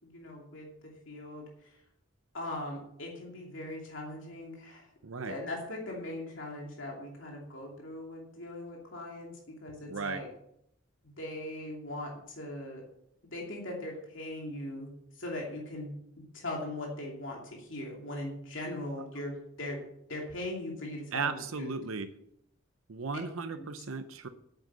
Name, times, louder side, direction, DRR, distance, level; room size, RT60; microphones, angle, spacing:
voice 1, 0.0-1.8 2.3-4.9 5.2-10.3 11.0-12.8 13.3-15.9 16.3-19.8 20.1-21.7 23.6-23.7, left 1 dB, 65° left, -1 dB, 2.7 m, -40 dB
voice 2, 5.0-5.4 9.9-10.2 21.1-22.1 22.9-24.3, right 4 dB, 85° right, 9 dB, 0.7 m, -35 dB
9.3 x 8.0 x 7.4 m, 0.76 s
head